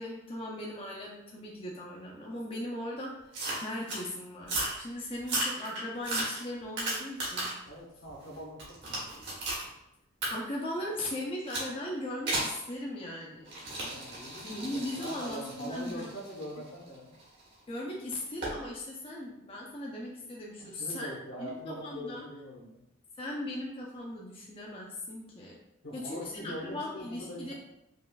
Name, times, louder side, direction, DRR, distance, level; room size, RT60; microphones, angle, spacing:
voice 1, 0.0-3.1 3.6-7.5 10.3-13.6 14.4-16.1 17.7-21.1 21.4-22.2 23.2-25.6 25.9-27.5, left 1 dB, 30° left, -3 dB, 0.5 m, -38 dB
sound 1, 3.3-4.0 4.4-4.8 5.2-7.7 8.1-9.7 10.2-10.3 11.5-11.7 12.3-12.6 13.5-17.4 18.4-18.6, right 1 dB, 60° right, 1.4 m, -35 dB
voice 2, 7.7-9.2 13.8-17.1 20.6-22.8 25.8-27.5, equal, 70° left, -2 dB, 1.1 m, -43 dB
5.2 x 2.4 x 2.3 m, 0.85 s
head